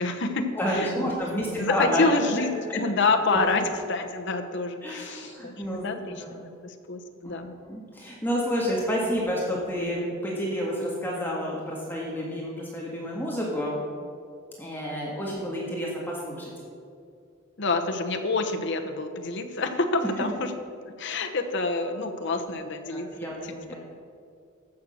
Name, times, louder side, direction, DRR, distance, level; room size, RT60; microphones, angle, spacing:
voice 1, 0.0-1.1 1.6-5.5 5.8-6.2 6.6-7.6 17.6-20.5 20.9-23.1 23.4-23.5, left 3 dB, 60° left, 5 dB, 1.0 m, -27 dB
voice 2, 0.5-2.1 2.3-2.8 3.3-3.4 4.8-5.9 6.2-6.4 7.6-13.8 14.6-16.5 20.2-20.3 22.9-23.7, equal, 10° left, -4 dB, 1.7 m, -30 dB
14.5 x 6.4 x 6.3 m, 2.3 s
head